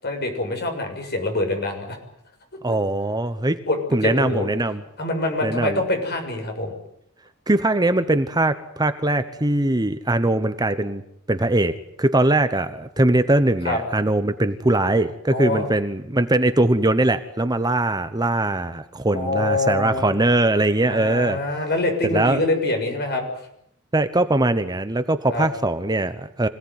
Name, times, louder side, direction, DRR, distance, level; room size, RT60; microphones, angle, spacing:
voice 1, 0.0-2.0 3.7-3.8 4.0-4.5 5.0-6.7 13.0-13.1 13.6-13.8 15.3-15.6 19.1-20.2 20.9-23.2 25.3-25.5, left 2 dB, 50° left, 3 dB, 6.8 m, -25 dB
voice 2, 2.6-3.6 3.9-4.8 5.4-5.8 7.5-11.0 11.3-21.4 22.0-22.4 23.9-26.5, right 2 dB, 20° right, 10 dB, 1.0 m, -21 dB
26.0 x 18.0 x 9.6 m, 0.75 s
head